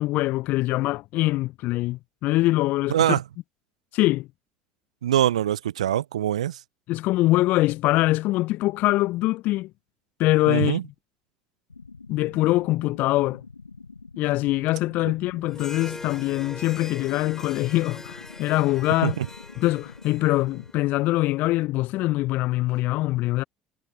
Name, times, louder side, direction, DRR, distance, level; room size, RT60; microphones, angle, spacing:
voice 1, 0.0-3.2 3.9-4.3 6.9-9.7 10.2-10.8 12.1-13.4 14.2-19.2 19.6-23.4, left 18 dB, 55° left, 0.9 m, -23 dB
voice 2, 2.9-3.2 5.0-6.6 10.5-10.8 19.0-19.3, right 11 dB, 75° right, 0.9 m, -23 dB
sound 1, 11.7-20.7, left 4 dB, 85° left, 1.3 m, -45 dB
Harp, 15.5-21.2, left 2 dB, 15° left, 4.1 m, -42 dB
figure-of-eight pair, 60°, 3 cm